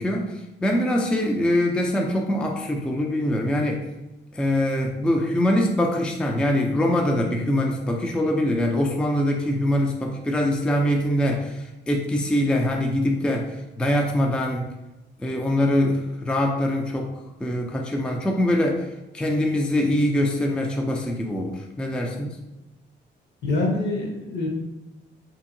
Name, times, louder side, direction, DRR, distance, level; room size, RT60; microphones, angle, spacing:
voice 1, 0.0-3.9 4.3-14.7 15.2-17.1 17.4-18.9 19.1-22.4, left 1 dB, 5° left, 1 dB, 0.3 m, -23 dB
voice 2, 23.4-24.5, left 2 dB, 60° left, 1 dB, 0.8 m, -25 dB
2.7 x 2.7 x 2.6 m, 1.0 s
cardioid pair, 90°, 20 cm